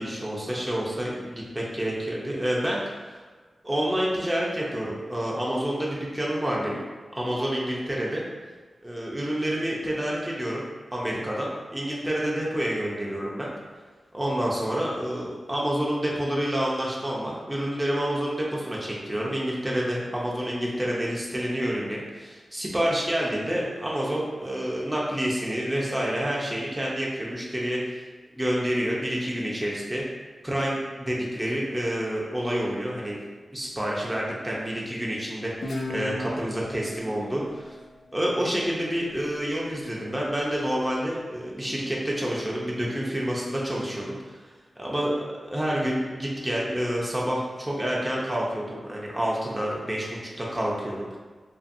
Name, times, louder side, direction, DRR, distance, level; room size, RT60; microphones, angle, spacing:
voice 1, 0.0-3.2 3.6-6.8 7.1-8.2 8.8-10.6 10.9-13.5 14.1-28.0 28.3-30.0 30.4-33.2 33.5-37.7 38.1-44.4 44.8-45.1 45.5-51.2, equal, 15° right, -4 dB, 0.5 m, -28 dB
Guitar, 35.6-38.9, left 1 dB, 75° left, 0.4 m, -36 dB
2.6 x 2.5 x 2.5 m, 1.4 s
cardioid pair, 55°, 0 cm